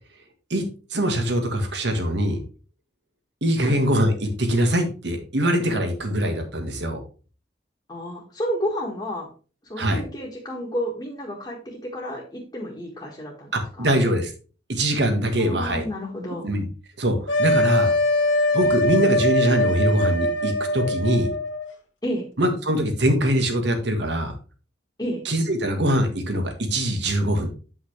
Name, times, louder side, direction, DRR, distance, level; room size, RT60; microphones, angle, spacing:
voice 1, 0.9-2.4 3.4-7.0 9.8-10.0 13.5-14.3 14.7-15.8 16.4-16.6 17.0-17.9 18.5-21.3 22.4-24.3 25.2-27.5, equal, 70° right, 5 dB, 1.6 m, -23 dB
voice 2, 7.9-9.3 9.7-14.0 15.4-16.5 22.0-22.3 25.0-25.2, equal, 25° left, -4 dB, 1.6 m, -31 dB
sound 1, 17.3-21.7, left 1 dB, 90° left, 1.6 m, -22 dB
8.5 x 5.5 x 3.3 m, 0.36 s
head